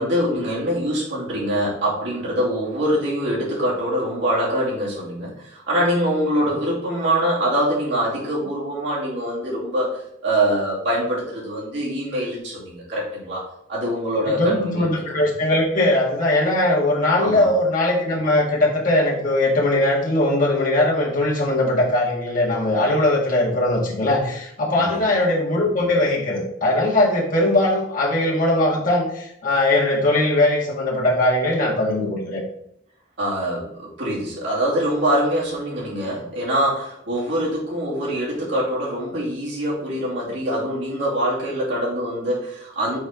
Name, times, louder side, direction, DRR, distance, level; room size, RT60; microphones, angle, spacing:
voice 1, 0.0-13.4 13.7-14.9 17.2-17.5 24.8-24.9 33.2-43.0, equal, 65° right, -6 dB, 2.5 m, -24 dB
voice 2, 14.3-32.4, left 1 dB, 45° left, -4 dB, 1.8 m, -20 dB
6.3 x 4.3 x 3.6 m, 0.77 s
head